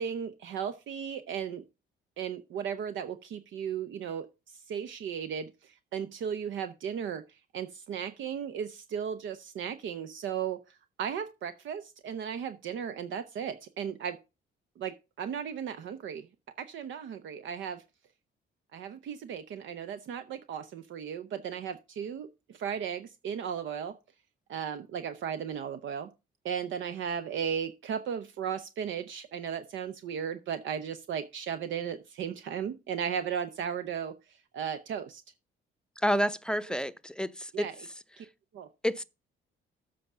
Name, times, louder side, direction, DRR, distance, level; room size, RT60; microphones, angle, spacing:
voice 1, 0.0-1.6 2.2-14.2 14.8-16.3 16.6-17.8 18.7-24.0 24.5-26.1 26.4-35.2 37.5-37.8 38.2-38.3 38.5-38.7, right 8 dB, 75° right, 0.8 m, -36 dB
voice 2, 36.0-37.7 38.8-39.0, equal, 5° left, 0.6 m, -29 dB
7.8 x 4.9 x 6.7 m
cardioid pair, 90°, 20 cm